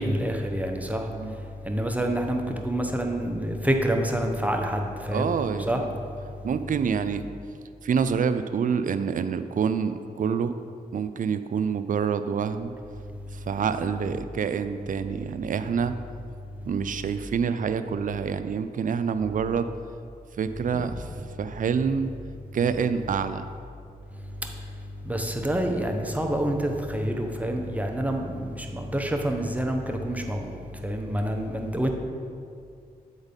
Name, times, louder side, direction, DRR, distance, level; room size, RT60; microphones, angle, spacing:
voice 1, 0.0-1.1 1.6-5.3 5.7-5.8 25.0-31.9, right 1 dB, 10° right, 3 dB, 0.9 m, -27 dB
voice 2, 5.1-5.8 6.4-7.2 7.8-10.5 10.9-12.7 13.3-15.9 16.7-19.7 20.4-21.1 21.4-22.1 22.5-23.5 31.3-31.5, right 6 dB, 55° right, 11 dB, 0.4 m, -27 dB
8.0 x 4.0 x 5.2 m, 2.4 s
cardioid pair, 50°, 16 cm